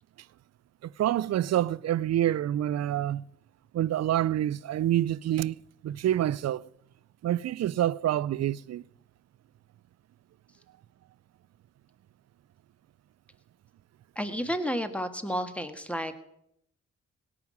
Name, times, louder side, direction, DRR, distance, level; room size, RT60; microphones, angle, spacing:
voice 1, 0.8-3.2 3.7-5.6 5.8-6.7 7.2-8.8, right 12 dB, 60° right, 0.5 m, -27 dB
voice 2, 14.2-16.2, equal, 5° left, 1.7 m, -31 dB
17.5 x 6.1 x 9.5 m
cardioid pair, 60°, 29 cm